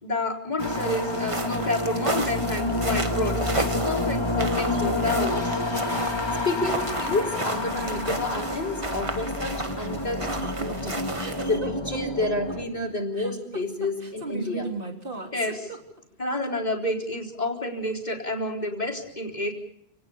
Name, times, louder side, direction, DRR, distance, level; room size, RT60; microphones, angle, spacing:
voice 1, 0.0-5.9 15.3-15.7 16.2-19.5, left 1 dB, 45° left, 1 dB, 4.2 m, -29 dB
sound 1, 0.6-12.6, left 2 dB, 25° left, 1.7 m, -29 dB
sound 2, 0.6-11.6, right 2 dB, 30° right, 1.6 m, -33 dB
voice 2, 6.4-11.0 11.4-14.7, left 2 dB, 75° left, 4 dB, 5.0 m, -30 dB
sound 3, 10.0-16.2, right 3 dB, 55° right, 3.6 m, -36 dB
29.0 x 19.0 x 7.1 m, 0.75 s
omnidirectional pair, 1.1 m